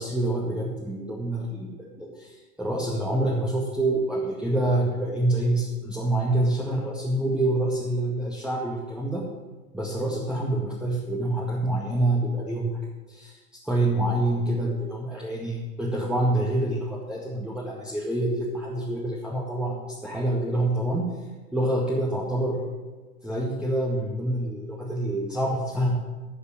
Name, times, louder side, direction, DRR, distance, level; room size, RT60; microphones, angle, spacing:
voice 1, 0.0-9.3 9.7-12.7 13.1-13.3 13.6-21.1 21.5-22.8 23.2-26.0, right 1 dB, ahead, -4 dB, 2.0 m, -26 dB
12.5 x 6.6 x 7.6 m, 1.3 s
hypercardioid pair, 90°, 44 cm